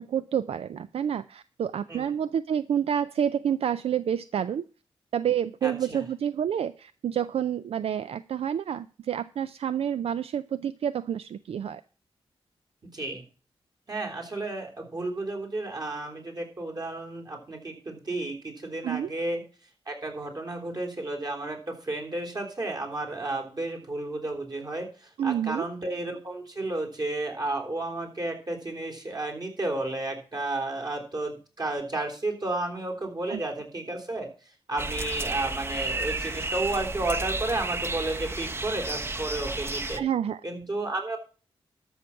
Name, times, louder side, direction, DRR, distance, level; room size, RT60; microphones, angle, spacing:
voice 1, 0.0-4.7 5.1-11.8 18.8-19.1 25.2-25.6 33.3-33.4 40.0-40.4, right 9 dB, 75° right, 14 dB, 0.4 m, -28 dB
voice 2, 5.6-6.0 12.9-13.2 13.9-19.4 19.9-34.3 34.7-40.0 40.4-41.2, right 2 dB, 45° right, 1 dB, 3.5 m, -32 dB
sound 1, 34.8-40.0, right 2 dB, 25° right, 0.9 m, -32 dB
13.0 x 6.3 x 5.7 m, 0.37 s
wide cardioid pair, 90°, 10 cm